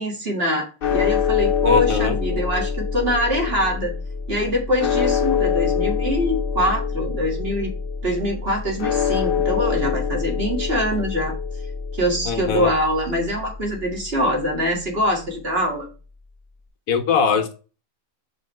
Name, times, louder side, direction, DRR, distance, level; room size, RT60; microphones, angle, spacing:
voice 1, 0.0-3.9 4.3-7.7 8.0-11.3 11.9-15.9, equal, 40° right, 2.0 m, -24 dB
sound 1, 0.8-15.0, left 6 dB, 45° left, 0.8 m, -25 dB
voice 2, 1.6-2.2 12.3-12.7 16.9-17.5, left 6 dB, 70° left, 1.2 m, -21 dB
5.7 x 5.6 x 3.1 m
omnidirectional pair, 1.5 m